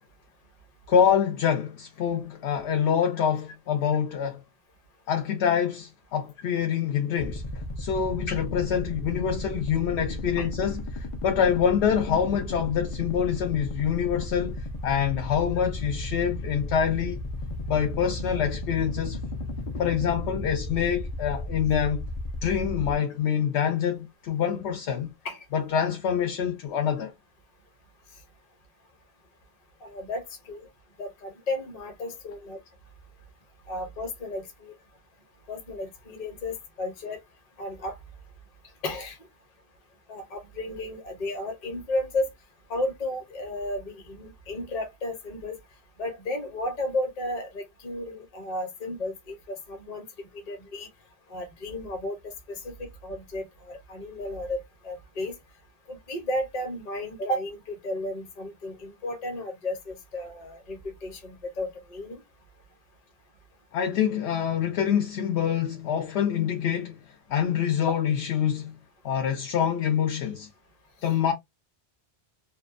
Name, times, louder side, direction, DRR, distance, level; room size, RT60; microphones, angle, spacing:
voice 1, 0.9-4.4 5.1-7.4 7.8-17.2 17.7-19.2 19.8-22.1 22.4-25.1 25.5-27.1 63.7-67.0 67.3-68.7 69.0-70.5 71.0-71.3, left 8 dB, 90° left, 0.9 m, -26 dB
sound 1, 7.2-23.0, left 1 dB, 60° left, 0.3 m, -34 dB
voice 2, 29.8-30.7 31.0-32.6 33.7-34.7 35.5-37.2 37.6-38.0 38.8-39.2 40.1-42.3 42.7-45.5 46.0-50.9 51.3-52.2 52.5-55.4 55.9-62.2 67.9-68.0, left 1 dB, 40° left, 0.7 m, -33 dB
2.7 x 2.1 x 2.4 m
omnidirectional pair, 1.1 m